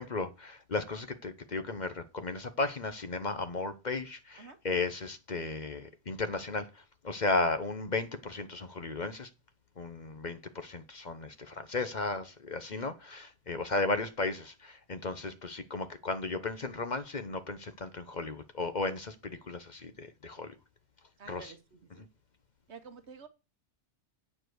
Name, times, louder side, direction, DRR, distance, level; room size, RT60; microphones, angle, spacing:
voice 1, 0.0-6.7 7.0-9.3 9.8-20.5 21.3-21.5, left 3 dB, 40° left, 1.0 m, -35 dB
voice 2, 21.2-22.1 22.7-23.3, right 5 dB, 70° right, 1.4 m, -50 dB
8.9 x 5.0 x 7.8 m
omnidirectional pair, 1.2 m